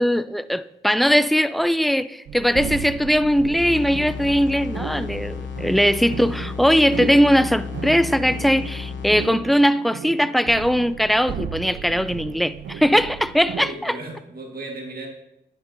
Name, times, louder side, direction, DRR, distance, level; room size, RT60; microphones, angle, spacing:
voice 1, 0.0-14.0, equal, ahead, 0.3 m, -20 dB
sound 1, 2.3-13.7, right 7 dB, 75° right, 0.5 m, -35 dB
sound 2, 3.6-9.6, left 6 dB, 85° left, 0.9 m, -33 dB
voice 2, 13.6-15.1, right 2 dB, 55° right, 1.6 m, -35 dB
9.8 x 7.0 x 2.7 m
cardioid pair, 50°, 19 cm